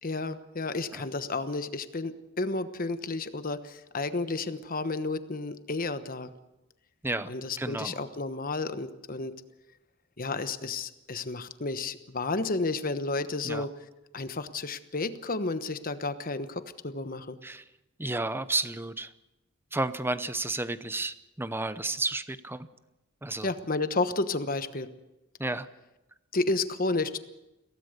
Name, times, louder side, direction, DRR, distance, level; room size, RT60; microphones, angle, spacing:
voice 1, 0.0-6.3 7.3-9.3 10.2-13.7 14.1-17.4 23.4-24.9 26.3-27.2, left 3 dB, 45° left, 11 dB, 1.1 m, -31 dB
voice 2, 7.6-8.0 13.4-13.7 17.4-17.6 18.0-19.1 19.7-22.7 23.2-23.5 25.4-25.7, right 2 dB, 10° right, 13 dB, 0.7 m, -32 dB
23.0 x 17.0 x 6.7 m, 0.99 s
head